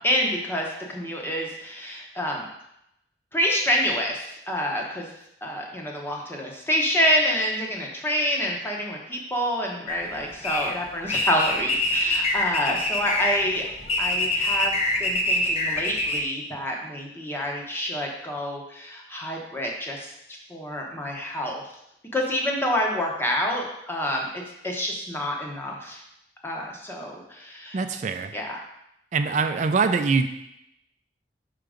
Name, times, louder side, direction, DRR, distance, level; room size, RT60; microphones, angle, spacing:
voice 1, 0.0-2.4 3.3-5.1 5.4-13.6 14.0-14.7 15.0-20.1 20.5-21.6 22.1-26.0 26.4-28.0 28.3-28.6, equal, 15° left, -1 dB, 1.0 m, -27 dB
sound 1, 9.9-16.2, left 2 dB, 35° left, 0.8 m, -25 dB
voice 2, 27.7-28.3 29.1-30.3, right 4 dB, 45° right, 7 dB, 0.4 m, -23 dB
5.8 x 3.8 x 5.0 m, 0.81 s
head